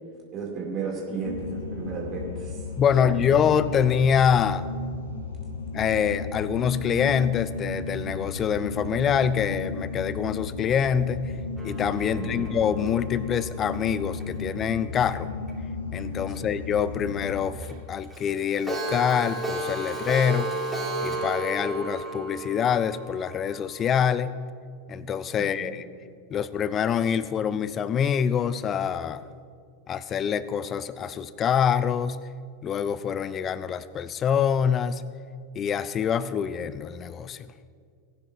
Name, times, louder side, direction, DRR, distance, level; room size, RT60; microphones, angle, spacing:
voice 1, 0.3-2.6 3.0-3.2 12.1-12.5 16.3-16.5 25.4-25.7, right 5 dB, 35° right, -1 dB, 2.5 m, -34 dB
sound 1, 1.2-17.5, left 4 dB, 65° left, 1.1 m, -34 dB
voice 2, 2.8-4.6 5.7-11.3 11.6-15.3 15.9-20.5 21.0-24.4 24.9-25.8 26.3-29.2 29.9-32.2 32.6-35.0 35.6-37.4, left 8 dB, 25° left, 16 dB, 0.4 m, -25 dB
Clock, 11.6-14.6 15.1-15.2 15.5-15.6 15.9-16.0 16.3-16.4 16.8-16.9 17.2-17.3 17.6-17.7 18.0-23.9, right 2 dB, 5° right, 3.4 m, -34 dB
19.5 x 9.9 x 2.6 m, 2.2 s
figure-of-eight pair, 90°, 0 cm